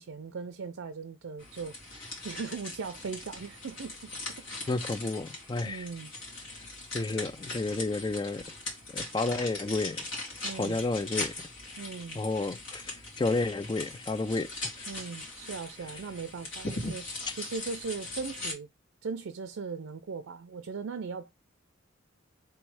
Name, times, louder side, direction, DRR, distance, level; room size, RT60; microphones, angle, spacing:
voice 1, 0.0-4.1 4.4-4.8 5.6-6.1 10.4-10.8 11.8-12.2 14.9-18.7 19.0-21.3, right 5 dB, 85° right, 0.5 m, -39 dB
sound 1, 1.4-18.5, left 2 dB, 70° left, 2.3 m, -40 dB
voice 2, 4.7-5.8 6.9-8.4 8.9-10.0 10.5-11.3 12.2-14.5, left 3 dB, 20° left, 0.4 m, -31 dB
3.5 x 3.1 x 4.7 m
head